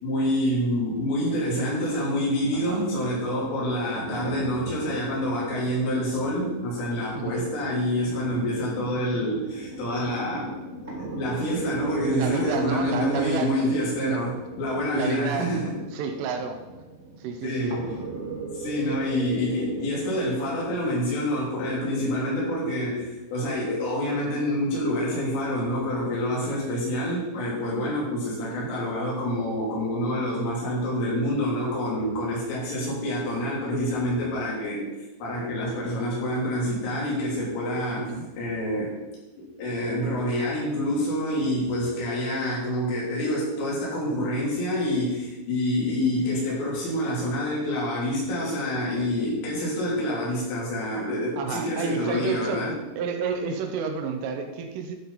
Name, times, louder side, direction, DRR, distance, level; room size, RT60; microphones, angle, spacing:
voice 1, 0.0-10.5 11.0-15.7 17.4-17.9 18.5-34.9 35.2-38.1 38.4-39.0 39.4-52.7, left 1 dB, 75° left, -5 dB, 5.9 m, -27 dB
sound 1, 1.2-20.8, right 2 dB, 60° right, 0.7 m, -39 dB
voice 2, 2.5-2.9 7.1-7.5 12.1-13.7 14.0-14.3 14.9-15.6 15.9-16.6 17.2-17.8 18.8-19.0 28.4-28.7 38.0-38.3 51.4-52.7 53.0-55.0, right 5 dB, 80° right, 6 dB, 3.4 m, -30 dB
12.5 x 8.0 x 4.2 m, 1.1 s
omnidirectional pair, 5.8 m